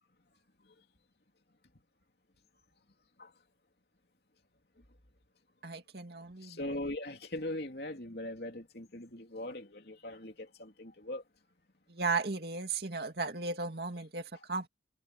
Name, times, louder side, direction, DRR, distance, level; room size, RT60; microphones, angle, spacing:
voice 1, 5.6-6.8 11.9-14.7, right 4 dB, 60° right, 2.4 m, -36 dB
voice 2, 6.4-11.2, left 1 dB, 60° left, 3.0 m, -40 dB
head